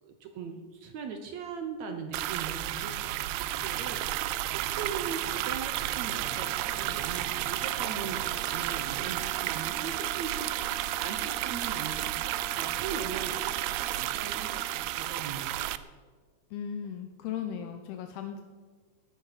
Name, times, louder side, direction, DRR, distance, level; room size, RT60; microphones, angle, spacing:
voice 1, 0.0-15.8, right 6 dB, 70° right, 5 dB, 1.7 m, -40 dB
sound 1, 2.1-15.8, right 15 dB, 85° right, 1.9 m, -32 dB
sound 2, 2.5-8.9, right 4 dB, 45° right, 3.4 m, -47 dB
Brass instrument, 6.1-15.0, right 3 dB, 55° left, 3.6 m, -47 dB
voice 2, 16.5-18.4, left 8 dB, 80° left, 6 dB, 2.7 m, -37 dB
18.0 x 10.5 x 5.7 m, 1.5 s
omnidirectional pair, 4.6 m